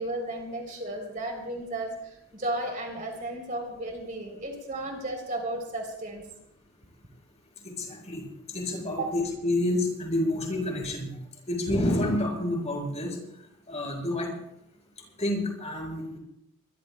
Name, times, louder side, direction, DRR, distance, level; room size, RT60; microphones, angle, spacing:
voice 1, 0.0-6.2 8.9-9.1, right 1 dB, 35° right, 3 dB, 3.3 m, -34 dB
voice 2, 7.6-11.1 11.5-13.2 13.7-14.3 15.2-16.2, left 1 dB, 30° left, 0 dB, 6.1 m, -29 dB
24.5 x 21.5 x 2.2 m, 0.79 s
head